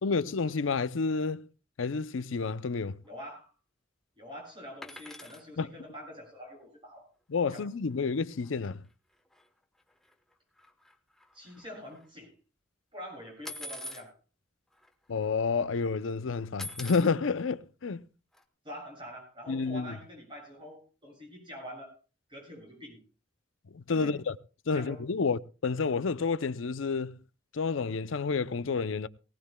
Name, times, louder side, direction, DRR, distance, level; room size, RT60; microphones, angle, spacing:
voice 1, 0.0-1.5 1.8-3.0 5.6-5.7 7.3-8.8 15.1-18.0 19.5-19.9 23.7-24.4 24.7-27.2 27.5-29.1, left 4 dB, 80° left, 0.6 m, -30 dB
voice 2, 3.0-3.5 4.2-7.1 7.5-7.7 11.3-12.3 12.9-14.1 18.6-21.9 22.3-23.0 23.9-24.1 24.7-25.0, equal, 25° right, 7.6 m, -45 dB
sound 1, 4.8-5.4 7.6-7.7 8.0-8.2 8.4-8.5 9.3-9.4 9.9-10.3 10.6-12.1 13.5-14.1 14.8-14.9 15.2-15.6 16.6-17.1 18.3-18.4, left 1 dB, ahead, 1.0 m, -43 dB
19.0 x 18.5 x 2.3 m
head